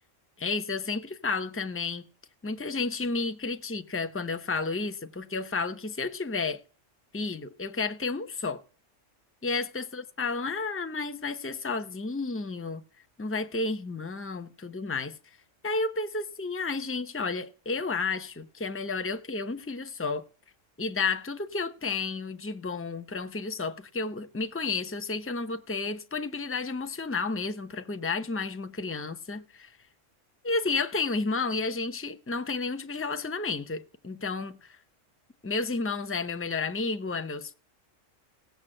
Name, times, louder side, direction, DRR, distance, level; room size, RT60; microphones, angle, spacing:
voice 1, 0.4-2.0 2.4-6.6 7.1-8.6 9.4-12.8 13.2-15.2 15.6-20.2 20.8-29.7 30.4-34.8 35.4-37.5, left 4 dB, 15° left, 0.6 m, -31 dB
16.5 x 7.0 x 7.7 m
omnidirectional pair, 1.3 m